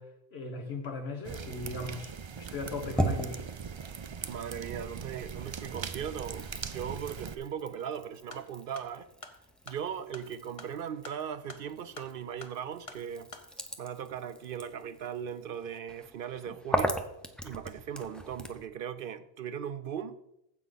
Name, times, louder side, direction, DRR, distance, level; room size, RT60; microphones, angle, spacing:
voice 1, 0.0-3.5, left 2 dB, 75° left, 1.6 m, -38 dB
sound 1, 1.2-7.4, right 6 dB, 50° right, 0.3 m, -40 dB
sound 2, 2.4-5.1 5.4-18.7, equal, ahead, 0.7 m, -39 dB
voice 2, 4.2-9.1 9.7-13.3 13.8-17.0 17.4-20.2, right 8 dB, 65° right, 0.7 m, -38 dB
sound 3, 8.3-13.5, left 3 dB, 35° left, 1.0 m, -50 dB
15.5 x 5.2 x 4.0 m
omnidirectional pair, 1.1 m